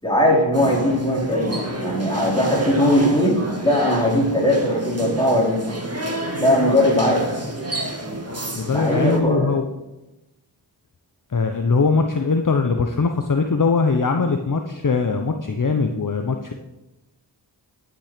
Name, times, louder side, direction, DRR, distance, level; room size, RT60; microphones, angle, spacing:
voice 1, 0.0-5.8 6.4-7.3 8.7-9.5, left 1 dB, 10° left, -3 dB, 4.7 m, -19 dB
sound 1, 0.5-9.2, right 1 dB, 30° right, 2.1 m, -29 dB
voice 2, 8.5-9.7 11.3-16.5, left 4 dB, 45° left, 5 dB, 1.0 m, -21 dB
11.5 x 9.0 x 5.2 m, 0.98 s
cardioid pair, 50°, 46 cm